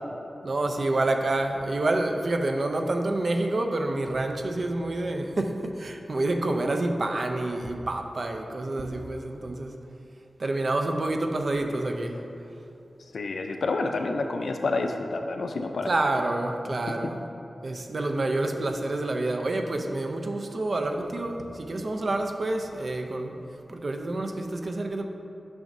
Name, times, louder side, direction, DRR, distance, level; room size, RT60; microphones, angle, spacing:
voice 1, 0.4-9.8 10.4-12.2 15.9-17.2 17.6-23.4 23.7-25.1, right 2 dB, 55° right, 4 dB, 0.5 m, -28 dB
voice 2, 13.1-15.9, left 3 dB, 85° left, 4 dB, 0.5 m, -28 dB
9.1 x 6.2 x 2.7 m, 2.8 s
wide cardioid pair, 85°, 0 cm